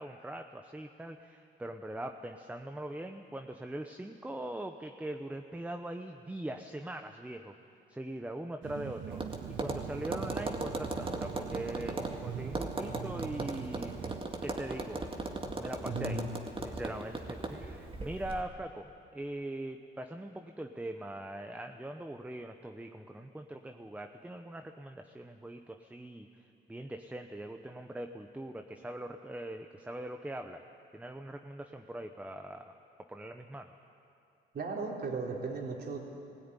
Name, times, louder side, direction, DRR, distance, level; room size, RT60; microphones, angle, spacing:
voice 1, 0.0-7.5 7.9-9.2 9.6-15.0 15.5-16.2 16.6-30.6 30.9-32.7 33.1-33.7, right 1 dB, 5° right, 6 dB, 0.9 m, -41 dB
sound 1, 8.6-14.2, right 11 dB, 75° right, 0.7 m, -43 dB
Tap, 9.1-18.4, right 2 dB, 25° right, 2.1 m, -38 dB
voice 2, 15.8-16.3 34.5-36.0, right 3 dB, 55° right, 0 dB, 3.6 m, -36 dB
18.0 x 16.5 x 9.9 m, 2.6 s
cardioid pair, 90°, 20 cm